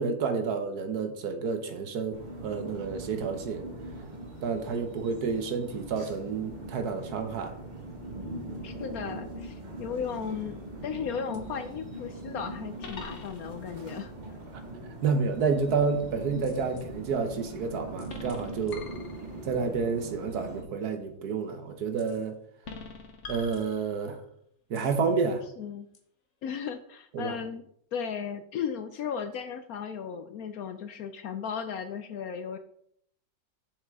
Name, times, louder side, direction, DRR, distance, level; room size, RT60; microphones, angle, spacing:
voice 1, 0.0-3.6 4.4-7.5 15.0-18.9 19.4-22.4 23.3-24.2 24.7-25.4 27.1-27.4, right 5 dB, 65° right, 7 dB, 1.4 m, -30 dB
sound 1, 2.1-20.6, right 2 dB, 25° right, 1.4 m, -41 dB
voice 2, 8.6-14.1 25.6-25.9 26.4-27.6 27.9-32.6, left 7 dB, 70° left, 9 dB, 0.9 m, -35 dB
sound 2, 10.2-10.7 11.3-11.4 12.8-13.7 16.4-16.9 18.0-19.6 22.0-22.3 22.6-24.2 24.7-25.0 25.9-26.0, left 4 dB, 45° left, 1.2 m, -45 dB
7.1 x 6.7 x 3.6 m, 0.67 s
omnidirectional pair, 1.9 m